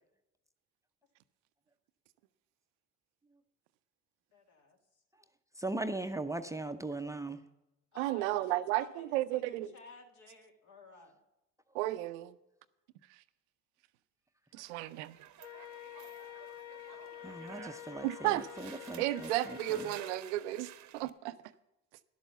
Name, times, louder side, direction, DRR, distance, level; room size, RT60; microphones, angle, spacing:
voice 1, 4.3-5.0 7.9-11.2, left 2 dB, 55° left, 2.3 m, -55 dB
voice 2, 5.6-7.4 17.2-19.9, right 2 dB, 10° right, 0.6 m, -39 dB
voice 3, 8.0-9.7 11.7-12.4 13.1-13.2 14.5-15.2 18.0-18.5 19.0-21.4, right 16 dB, 85° right, 0.6 m, -33 dB
sound 1, 14.6-21.1, right 12 dB, 55° right, 0.8 m, -53 dB
Wind instrument woodwind instrument, 15.4-20.2, left 15 dB, 75° left, 0.6 m, -48 dB
11.0 x 7.3 x 6.9 m
hypercardioid pair, 65°, 35 cm